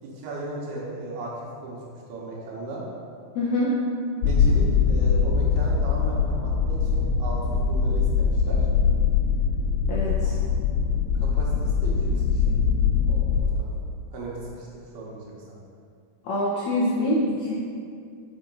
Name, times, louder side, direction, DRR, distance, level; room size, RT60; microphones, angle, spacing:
voice 1, 0.0-2.8 4.2-8.7 11.2-12.5 13.1-13.8 14.1-15.6, right 2 dB, 85° right, -4 dB, 3.3 m, -36 dB
voice 2, 3.4-3.7 9.9-10.3 16.2-17.5, left 1 dB, 70° left, -6 dB, 1.8 m, -25 dB
sound 1, 4.2-13.4, left 6 dB, 90° left, 2.7 m, -22 dB
6.6 x 5.9 x 5.4 m, 2.3 s
omnidirectional pair, 4.3 m